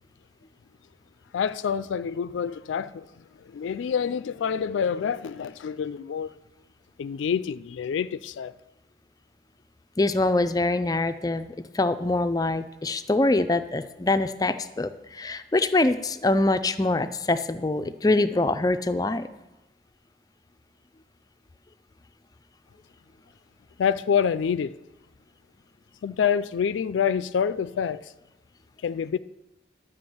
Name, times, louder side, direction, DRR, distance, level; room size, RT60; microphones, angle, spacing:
voice 1, 1.3-3.1 3.4-6.3 7.0-8.5 23.8-24.8 26.0-28.1 28.8-29.2, left 7 dB, 90° left, 0.3 m, -27 dB
voice 2, 10.0-19.3, left 2 dB, 20° left, 0.4 m, -24 dB
11.5 x 6.1 x 7.7 m
head